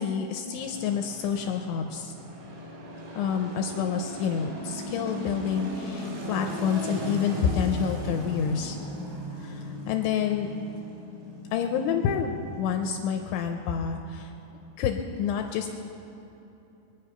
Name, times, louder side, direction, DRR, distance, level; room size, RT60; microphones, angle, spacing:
voice 1, 0.0-2.1 3.2-8.8 9.4-10.5 11.5-14.3 14.8-15.7, left 7 dB, 80° left, 4 dB, 2.8 m, -28 dB
sound 1, 0.6-14.8, equal, 65° right, 5.6 m, -38 dB
24.0 x 9.2 x 5.6 m, 3.0 s
omnidirectional pair, 5.9 m